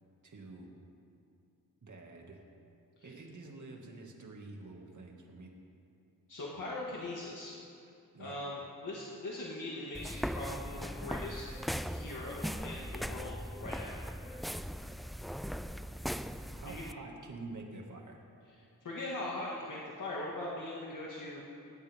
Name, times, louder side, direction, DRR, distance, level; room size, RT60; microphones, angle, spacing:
voice 1, 0.2-0.7 1.8-2.4 3.0-5.5 8.1-8.4 16.5-18.2, right 3 dB, 55° right, 0 dB, 2.3 m, -48 dB
voice 2, 6.3-7.5 8.2-11.4 11.9-14.0 16.7-16.9 18.8-21.4, left 2 dB, 55° left, -5 dB, 2.2 m, -41 dB
sound 1, 9.9-16.9, equal, ahead, 0.3 m, -39 dB
20.0 x 18.5 x 3.7 m, 2.6 s
wide cardioid pair, 135°, 37 cm